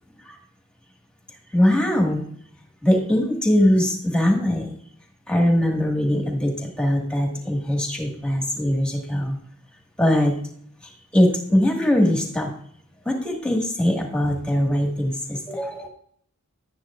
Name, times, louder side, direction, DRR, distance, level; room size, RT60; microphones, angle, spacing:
voice 1, 1.5-2.3 2.8-4.7 5.3-9.4 10.0-10.3 11.1-12.5 13.1-15.9, left 1 dB, 5° left, 1 dB, 1.8 m, -21 dB
11.5 x 9.5 x 2.5 m, 0.63 s
head